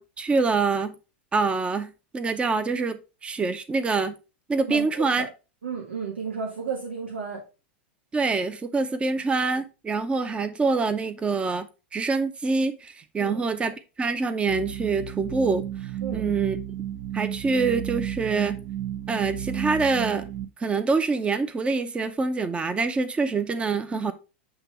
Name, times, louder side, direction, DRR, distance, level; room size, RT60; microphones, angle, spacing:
voice 1, 0.2-1.0 1.3-4.1 4.5-5.3 8.1-11.7 11.9-16.6 17.1-18.6 19.1-20.3 20.6-24.1, right 4 dB, 20° right, 0.7 m, -25 dB
voice 2, 4.7-5.3 5.6-7.4 13.2-13.4 16.0-16.4, right 5 dB, 90° right, 1.3 m, -33 dB
sound 1, 14.5-20.5, right 11 dB, 60° right, 1.1 m, -32 dB
7.8 x 3.0 x 4.5 m
hypercardioid pair, 100°, 6 cm